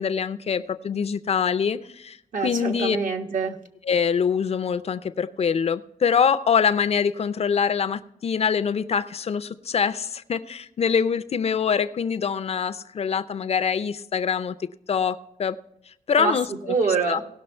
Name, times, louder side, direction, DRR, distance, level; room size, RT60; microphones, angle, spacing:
voice 1, 0.0-3.0 3.9-15.6 16.1-16.5 17.1-17.2, left 7 dB, 50° left, 0.5 m, -24 dB
voice 2, 2.3-3.6 16.2-17.2, right 4 dB, 65° right, 1.4 m, -25 dB
18.0 x 6.2 x 4.3 m
wide cardioid pair, 130°, 14 cm